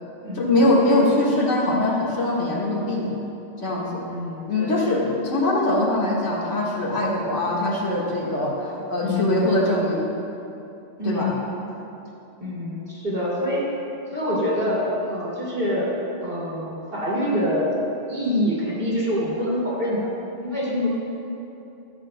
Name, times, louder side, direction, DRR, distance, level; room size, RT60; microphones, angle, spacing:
voice 1, 0.3-3.1 3.6-4.0 4.5-10.0 11.0-11.4, left 1 dB, 85° left, -4 dB, 2.1 m, -22 dB
voice 2, 4.1-4.8 9.0-9.5 11.0-11.3 12.4-13.7 14.1-15.9 16.2-17.7 18.1-20.1 20.4-20.9, equal, 50° right, -6 dB, 2.9 m, -25 dB
15.0 x 12.5 x 2.2 m, 2.8 s
omnidirectional pair, 1.2 m